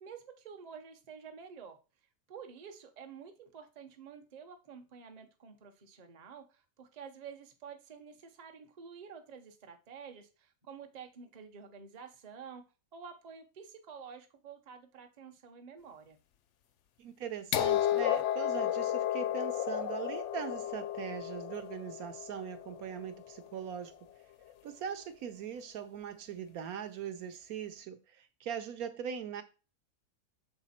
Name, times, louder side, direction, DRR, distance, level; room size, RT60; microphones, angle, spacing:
voice 1, 0.0-1.8 2.3-12.6 12.9-16.2, right 6 dB, 35° right, 0.7 m, -50 dB
voice 2, 17.0-23.9 24.6-29.4, right 8 dB, 70° right, 1.1 m, -41 dB
sound 1, 17.5-23.4 24.5-24.6, left 11 dB, 65° left, 0.7 m, -33 dB
6.7 x 3.9 x 4.2 m
omnidirectional pair, 1.6 m